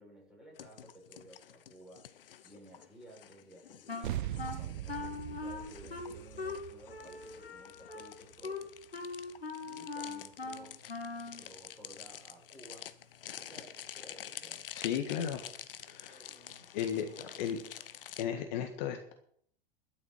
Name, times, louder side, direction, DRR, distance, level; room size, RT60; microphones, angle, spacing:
voice 1, 0.0-2.1 2.4-8.7 9.6-10.8 11.4-12.9 13.4-15.5 15.9-16.7 17.2-17.4 17.7-17.8, right 1 dB, ahead, -3 dB, 7.3 m, -55 dB
sound 1, 0.6-18.2, left 10 dB, 65° left, 1.0 m, -49 dB
Wind instrument woodwind instrument, 3.9-11.4, left 3 dB, 85° left, 1.9 m, -41 dB
sound 2, 4.0-8.8, right 13 dB, 55° right, 0.8 m, -41 dB
voice 2, 14.7-15.4 15.8-16.2 16.7-17.1 17.4-17.6 18.2-19.1, left 9 dB, 50° left, 6 dB, 1.7 m, -34 dB
12.5 x 7.3 x 9.1 m, 0.63 s
figure-of-eight pair, 95°, 29 cm